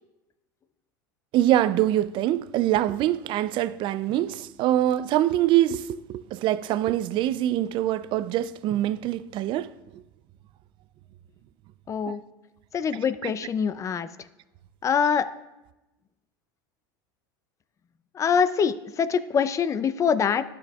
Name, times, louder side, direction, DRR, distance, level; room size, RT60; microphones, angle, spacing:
voice 1, 1.3-9.7 12.1-12.2 13.2-13.3, right 13 dB, 50° right, 0.4 m, -24 dB
voice 2, 11.9-12.2 12.7-14.1 14.8-15.2 18.1-20.4, left 7 dB, 30° left, 0.4 m, -24 dB
12.0 x 6.1 x 2.3 m
hypercardioid pair, 95°, 11 cm